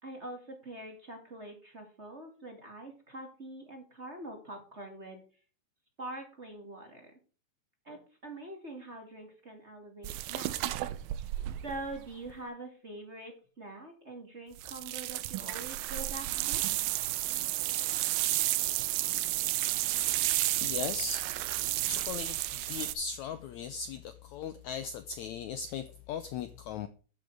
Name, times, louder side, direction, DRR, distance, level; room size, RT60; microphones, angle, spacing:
voice 1, 0.0-5.2 6.0-7.1 7.8-10.6 11.5-16.6, right 2 dB, 20° right, 2 dB, 2.2 m, -44 dB
sound 1, 10.0-12.3 14.6-22.9, right 16 dB, 85° right, 2.6 m, -32 dB
voice 2, 20.6-21.3 21.8-26.9, left 6 dB, 85° left, 12 dB, 1.6 m, -38 dB
13.0 x 7.9 x 4.9 m, 0.37 s
omnidirectional pair, 4.3 m